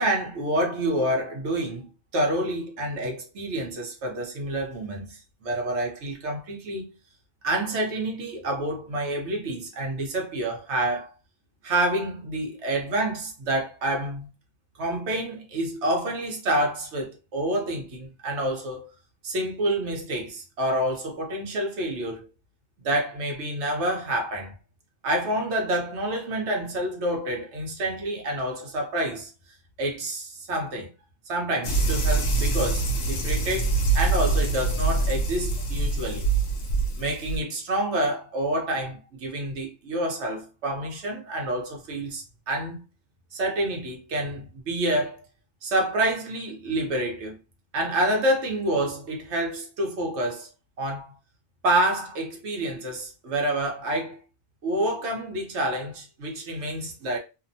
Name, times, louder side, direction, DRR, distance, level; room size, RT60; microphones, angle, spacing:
voice 1, 0.0-1.9 2.1-6.8 7.4-11.1 11.6-14.3 14.8-18.9 19.2-22.3 22.8-24.5 25.0-29.3 29.8-30.9 31.3-36.2 37.0-42.8 43.3-45.2 45.6-47.4 47.7-50.5 50.8-51.1 51.6-54.2 54.6-57.2, right 1 dB, 60° right, 1.0 m, -28 dB
sound 1, 31.6-37.4, right 3 dB, 70° left, 1.0 m, -24 dB
2.8 x 2.1 x 2.6 m
omnidirectional pair, 1.4 m